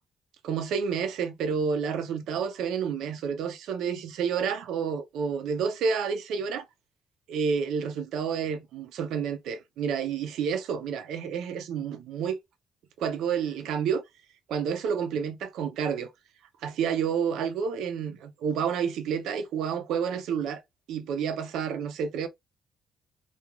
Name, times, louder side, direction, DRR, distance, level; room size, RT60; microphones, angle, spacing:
voice 1, 0.4-6.7 7.3-12.4 13.0-14.0 14.5-16.1 16.6-20.6 20.9-22.3, right 6 dB, 85° right, 0.6 m, -29 dB
2.9 x 2.3 x 2.3 m
cardioid pair, 90°, 0 cm